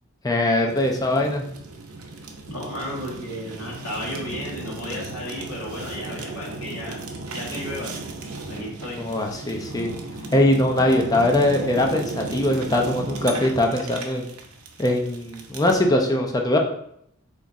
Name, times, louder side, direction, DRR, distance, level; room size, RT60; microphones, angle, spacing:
voice 1, 0.2-1.4 9.0-9.9 10.3-14.3 14.8-16.6, left 1 dB, 15° left, 2 dB, 0.4 m, -21 dB
Fire, 0.7-15.8, right 3 dB, 80° right, 0.6 m, -36 dB
voice 2, 2.5-7.0 7.3-7.9 8.5-9.0, left 1 dB, 80° left, -5 dB, 1.5 m, -33 dB
3.6 x 2.5 x 4.0 m, 0.71 s
head